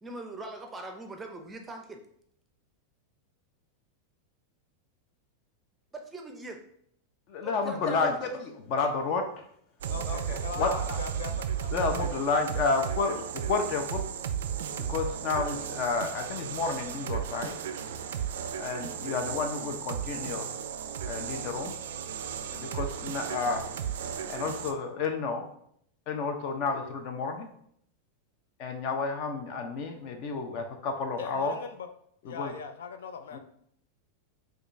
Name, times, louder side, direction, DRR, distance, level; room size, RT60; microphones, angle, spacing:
voice 1, 0.0-2.0 5.9-6.6 7.4-8.3, right 2 dB, 15° right, 3 dB, 0.5 m, -42 dB
voice 2, 7.3-9.5 10.1-11.0 11.7-14.0 14.9-17.5 18.5-20.5 21.1-21.7 22.5-23.7 24.3-25.4 26.1-27.5 28.6-31.6 32.2-32.5 33.3-33.4, left 4 dB, 50° left, 5 dB, 0.7 m, -31 dB
sound 1, 9.8-24.7, right 8 dB, 85° right, 0.3 m, -35 dB
voice 3, 9.9-11.7 12.7-13.1 31.2-31.9 32.2-33.4, left 6 dB, 90° left, 8 dB, 0.3 m, -40 dB
4.9 x 2.4 x 2.6 m, 0.68 s
supercardioid pair, 140°, 0 cm